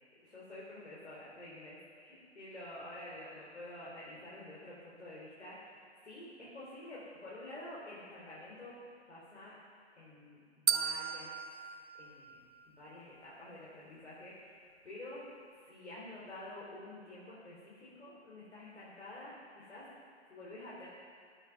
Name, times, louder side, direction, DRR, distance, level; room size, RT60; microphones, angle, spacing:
voice 1, 0.1-8.8 9.1-9.5 9.9-11.7 11.9-12.4 12.7-19.9 20.3-20.9, left 1 dB, 75° left, -8 dB, 4.5 m, -49 dB
sound 1, 10.7-12.9, right 7 dB, 75° right, 0.8 m, -36 dB
17.5 x 9.4 x 5.6 m, 2.1 s
figure-of-eight pair, 125°, 34 cm